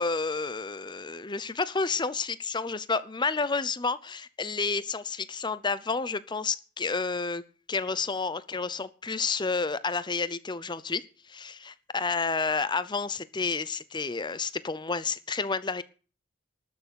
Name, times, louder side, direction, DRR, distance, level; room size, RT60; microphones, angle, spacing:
voice 1, 0.0-7.4 7.7-11.0 11.3-15.8, left 4 dB, 20° left, 0.7 m, -30 dB
12.5 x 6.9 x 8.2 m
head